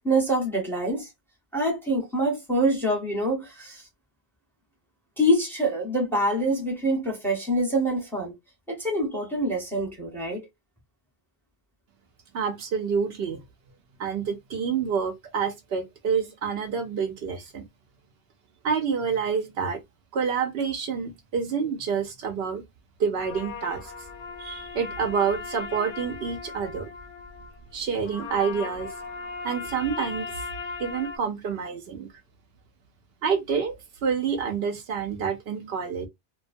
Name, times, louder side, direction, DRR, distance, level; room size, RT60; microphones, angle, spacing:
voice 1, 0.0-1.1 1.5-3.8 5.2-8.4 8.7-10.5, right 1 dB, ahead, 0.8 m, -25 dB
voice 2, 12.3-13.4 14.0-17.6 18.6-19.8 20.1-22.6 23.0-23.9 24.4-26.9 27.7-28.9 29.4-30.3 30.8-32.1 33.2-33.8 34.0-36.1, right 6 dB, 75° right, 0.8 m, -28 dB
sound 1, 23.2-31.2, left 5 dB, 60° left, 0.6 m, -38 dB
2.2 x 2.2 x 2.5 m
omnidirectional pair, 1.1 m